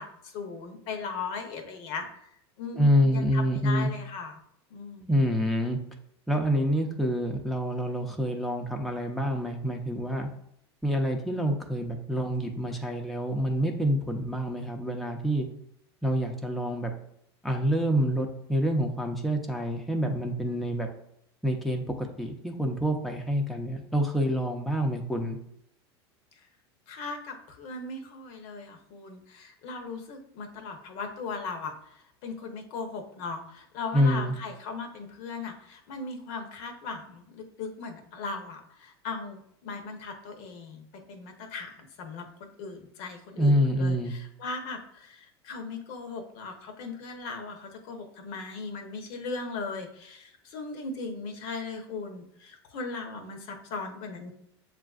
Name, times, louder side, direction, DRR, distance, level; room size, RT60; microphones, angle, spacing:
voice 1, 0.0-2.2 2.6-4.3 4.7-5.2 26.9-54.3, left 4 dB, 60° left, 5 dB, 0.8 m, -38 dB
voice 2, 2.7-3.9 5.1-5.8 6.3-10.3 10.8-15.5 16.0-16.9 17.4-20.9 21.4-25.4 33.9-34.3 43.4-44.1, equal, ahead, 2 dB, 0.5 m, -27 dB
7.1 x 2.5 x 2.4 m, 0.73 s
hypercardioid pair, 95°, 14 cm